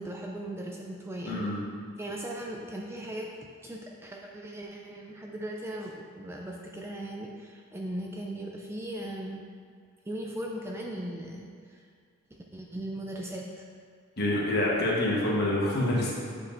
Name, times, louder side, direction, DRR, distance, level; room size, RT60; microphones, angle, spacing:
voice 1, 0.0-1.5 2.0-3.3 3.6-9.4 10.1-11.8 12.5-13.6, right 1 dB, 10° right, -1 dB, 0.4 m, -38 dB
voice 2, 1.2-1.6 14.2-16.1, left 1 dB, 50° left, -4 dB, 1.2 m, -26 dB
8.4 x 5.2 x 2.6 m, 2.1 s
head